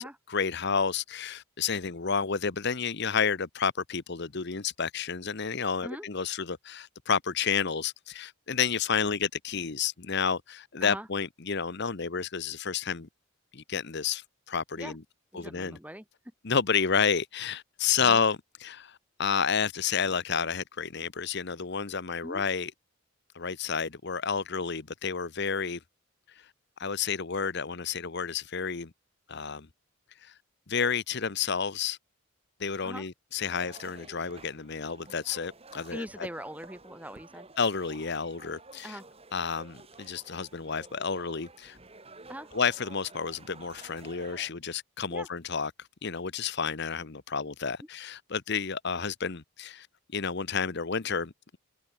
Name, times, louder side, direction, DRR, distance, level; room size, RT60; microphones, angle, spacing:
voice 1, 0.0-13.1 13.5-15.0 15.3-15.8 16.4-22.7 23.3-25.8 26.8-28.9 29.3-29.7 30.2-30.3 30.7-32.0 32.6-36.1 37.6-39.0 39.3-41.8 42.5-45.7 46.0-49.9 50.1-51.6, left 6 dB, 50° left, 0.9 m, -30 dB
voice 2, 15.3-16.0 18.0-18.2 22.2-22.4 32.8-33.1 35.9-37.5 38.8-39.1 42.3-42.5 45.1-45.3, right 1 dB, 5° right, 6.4 m, -41 dB
sound 1, 33.4-44.5, right 3 dB, 25° right, 3.6 m, -51 dB
head